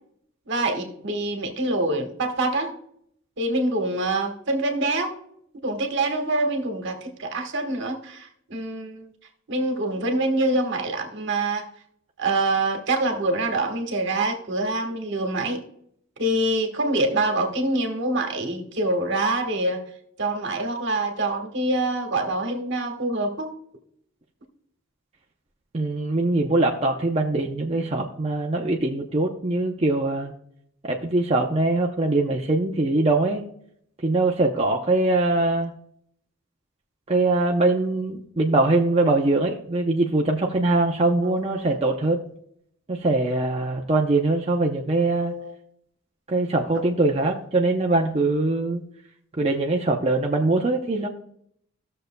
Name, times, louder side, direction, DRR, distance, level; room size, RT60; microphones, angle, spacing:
voice 1, 0.5-2.7 3.4-5.1 5.6-9.1 9.5-11.7 12.2-15.6 16.2-19.8 20.2-23.5 41.2-41.8 45.2-45.5 47.2-47.3, right 2 dB, 65° right, 5 dB, 1.4 m, -25 dB
voice 2, 25.7-30.3 30.8-33.4 34.0-35.7 37.1-42.2 42.9-45.3 46.3-48.8 49.4-51.1, right 2 dB, 30° right, 0 dB, 0.6 m, -22 dB
15.0 x 6.6 x 2.2 m, 0.69 s
head